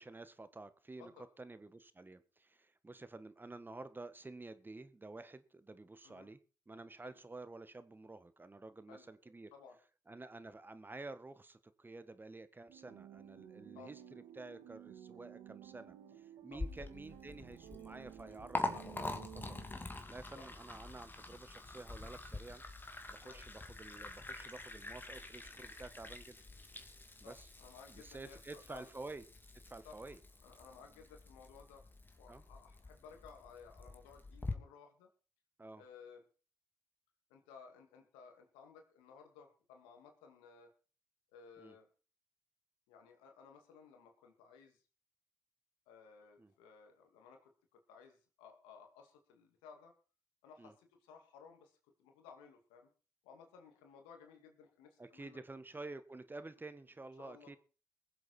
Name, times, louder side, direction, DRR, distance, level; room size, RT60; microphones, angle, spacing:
voice 1, 0.0-1.1 1.4-6.4 6.7-9.5 10.1-19.6 20.1-22.6 23.1-26.4 27.2-27.5 27.9-29.2 29.6-30.2 32.3-32.4 35.6-35.8 41.6-41.8 46.4-46.5 50.6-50.7 55.0-57.6, right 2 dB, 25° right, 13 dB, 1.5 m, -51 dB
sound 1, 12.7-20.0, right 11 dB, 80° right, 1.6 m, -54 dB
Liquid, 16.5-34.5, left 2 dB, 25° left, 2.7 m, -46 dB
voice 2, 27.2-28.9 29.8-30.1 30.4-31.8 32.2-35.1 35.7-36.2 37.3-40.7 41.3-41.9 42.9-44.8 45.9-49.9 50.4-52.9 53.2-55.4 57.2-57.6, left 6 dB, 85° left, 4 dB, 2.4 m, -58 dB
21.5 x 7.9 x 4.4 m, 0.37 s
hypercardioid pair, 45°, 8 cm